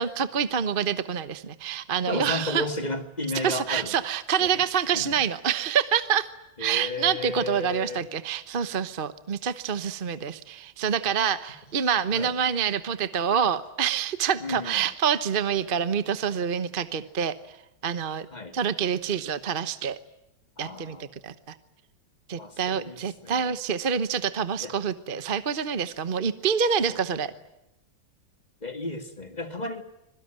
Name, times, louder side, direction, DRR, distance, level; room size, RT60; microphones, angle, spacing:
voice 1, 0.0-2.6 3.3-6.3 6.6-17.3 17.8-18.3 18.5-20.0 20.6-21.0 21.2-21.5 22.3-27.3, right 7 dB, 35° right, 13 dB, 1.0 m, -27 dB
voice 2, 2.1-3.9 4.4-4.5 4.9-5.2 6.6-8.0 12.1-12.3 14.4-14.9 18.3-18.6 20.6-21.1 22.4-23.5 24.6-24.7 26.9-27.0 27.3-27.4 28.6-29.8, left 2 dB, 25° left, 8 dB, 2.1 m, -33 dB
26.5 x 22.0 x 9.0 m, 0.86 s
omnidirectional pair, 1.9 m